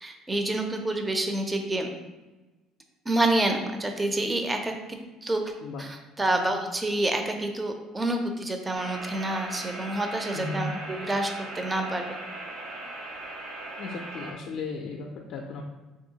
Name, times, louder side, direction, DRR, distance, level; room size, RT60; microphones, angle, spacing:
voice 1, 0.0-1.9 3.1-5.5 5.8-12.0, right 1 dB, 15° right, 4 dB, 0.4 m, -28 dB
sound 1, 8.7-14.3, right 2 dB, 70° right, 0.6 m, -38 dB
voice 2, 10.3-10.7 13.8-15.6, left 3 dB, 60° left, 1 dB, 0.3 m, -35 dB
3.7 x 2.6 x 2.7 m, 1.1 s
cardioid pair, 125°, 0 cm